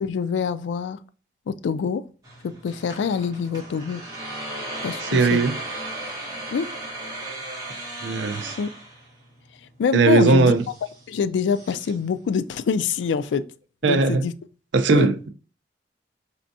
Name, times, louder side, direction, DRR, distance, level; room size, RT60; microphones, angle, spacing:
voice 1, 0.0-1.0 1.5-2.0 2.4-4.0 4.8-5.4 6.5-6.7 8.6-8.7 9.8-10.5 11.1-13.4 13.8-14.3 14.9-15.1, left 6 dB, 85° left, 0.3 m, -25 dB
sound 1, 2.2-13.4, right 1 dB, 20° right, 1.3 m, -37 dB
voice 2, 5.1-5.5 8.0-8.6 9.9-10.6 13.8-14.2 14.7-15.3, right 3 dB, 90° right, 0.4 m, -18 dB
4.3 x 3.4 x 2.6 m
head